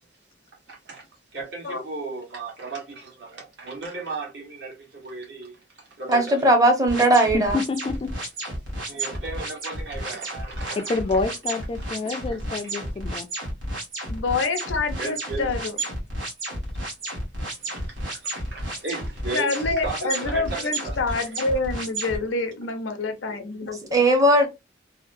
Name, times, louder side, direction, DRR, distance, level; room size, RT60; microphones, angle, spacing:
voice 1, 0.7-6.4 8.8-11.2 11.8-12.4 15.0-15.6 17.4-21.0, right 3 dB, 65° right, 1.2 m, -36 dB
voice 2, 6.1-7.6 23.9-24.5, right 1 dB, 20° right, 0.7 m, -18 dB
sound 1, 6.9-22.2, right 1 dB, 90° right, 1.1 m, -32 dB
voice 3, 7.7-8.1 10.9-13.3, left 3 dB, 30° left, 0.3 m, -27 dB
voice 4, 14.1-15.8 19.3-23.8, left 3 dB, 85° left, 0.6 m, -27 dB
2.8 x 2.0 x 2.5 m
head